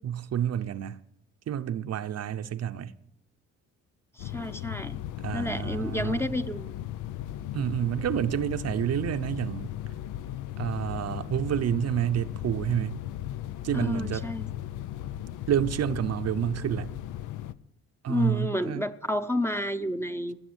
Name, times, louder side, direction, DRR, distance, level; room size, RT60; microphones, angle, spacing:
voice 1, 0.0-1.0 1.5-2.9 5.2-6.3 7.5-9.7 10.6-13.0 13.6-14.3 15.5-16.9 18.0-18.9, right 10 dB, 55° right, 0.7 m, -29 dB
sound 1, 4.2-17.5, left 13 dB, 80° left, 0.7 m, -36 dB
voice 2, 4.2-5.0 5.3-6.7 13.7-14.5 18.1-20.4, left 1 dB, 10° left, 0.8 m, -30 dB
18.0 x 7.7 x 8.0 m
cardioid pair, 90°, 30 cm